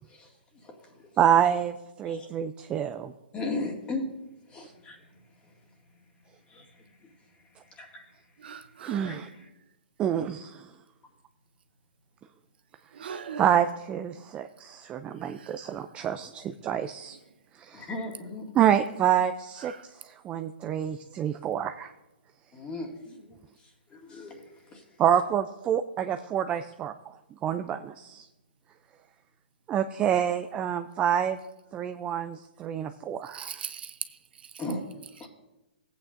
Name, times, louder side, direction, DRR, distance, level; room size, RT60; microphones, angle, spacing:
voice 1, 0.6-1.1 2.0-2.3 3.3-4.1 4.5-5.0 6.5-6.9 7.8-8.0 9.1-9.5 17.7-18.6 22.5-23.4 23.9-24.8 34.6-34.9 35.2-35.3, left 2 dB, 20° left, 2.1 m, -37 dB
voice 2, 1.2-3.1 8.8-9.3 10.0-10.7 13.4-17.2 17.6-17.9 18.5-19.7 20.0-21.9 25.0-26.9 27.4-28.3 29.7-31.4 31.7-33.6, right 9 dB, 20° right, 0.4 m, -27 dB
voice 3, 8.4-9.2 13.0-13.4 33.3-33.9, right 7 dB, 70° right, 0.7 m, -39 dB
16.5 x 8.5 x 2.6 m
hypercardioid pair, 135°, 6 cm